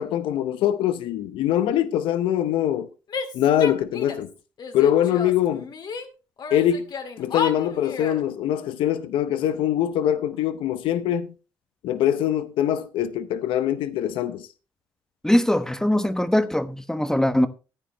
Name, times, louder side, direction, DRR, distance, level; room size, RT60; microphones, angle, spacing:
voice 1, 0.0-2.9 3.3-4.3 4.7-5.7 6.5-6.9 7.2-11.3 11.8-14.5, left 11 dB, 85° left, 0.7 m, -23 dB
Female speech woman speaking / Yell, 3.1-4.3 4.6-6.1 6.4-8.2, left 5 dB, 60° left, 2.0 m, -32 dB
voice 2, 15.2-17.5, left 1 dB, 5° left, 1.0 m, -21 dB
14.0 x 9.3 x 3.0 m
cardioid pair, 80°, 8 cm